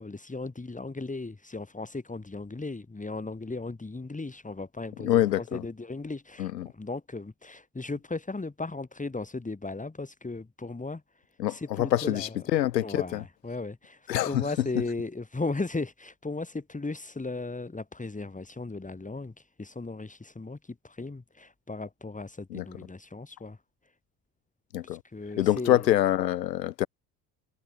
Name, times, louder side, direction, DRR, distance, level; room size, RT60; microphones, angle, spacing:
voice 1, 0.0-12.4 12.8-24.0 24.8-25.9, left 3 dB, 15° left, 7.4 m, -37 dB
voice 2, 5.0-5.6 6.4-6.7 11.4-12.9 13.1-13.2 14.1-14.4 22.5-22.6 24.7-25.0 25.4-26.9, left 13 dB, 85° left, 1.2 m, -25 dB
hypercardioid pair, 60°, 49 cm